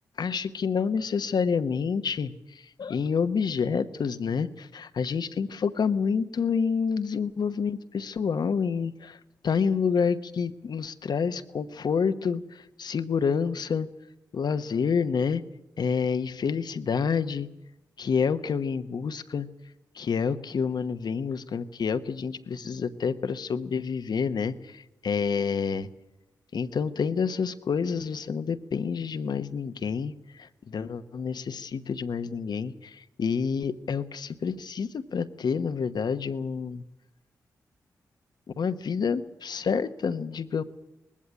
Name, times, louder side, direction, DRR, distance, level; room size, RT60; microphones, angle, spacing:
voice 1, 0.2-13.9 14.3-15.4 15.8-17.5 18.0-19.5 19.9-25.9 26.5-36.8 38.6-40.6, left 6 dB, 65° left, 11 dB, 1.1 m, -28 dB
19.5 x 16.0 x 9.9 m, 0.92 s
supercardioid pair, 45°, 8 cm